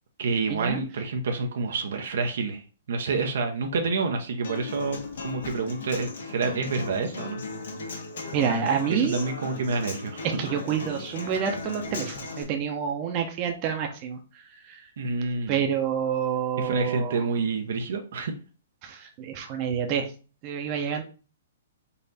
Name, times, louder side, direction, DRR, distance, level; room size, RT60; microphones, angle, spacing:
voice 1, 0.2-2.6 2.9-7.4 8.9-10.4 15.0-15.6 16.6-18.3, right 4 dB, 70° right, 4 dB, 0.8 m, -28 dB
Human voice / Acoustic guitar, 4.4-12.4, left 3 dB, 70° left, 1.3 m, -37 dB
voice 2, 8.3-9.2 10.4-14.2 14.7-14.8 15.5-17.2 18.8-20.1 20.4-21.0, right 7 dB, 35° right, 4 dB, 0.8 m, -28 dB
4.1 x 2.5 x 4.1 m, 0.36 s
hypercardioid pair, 135°, 0 cm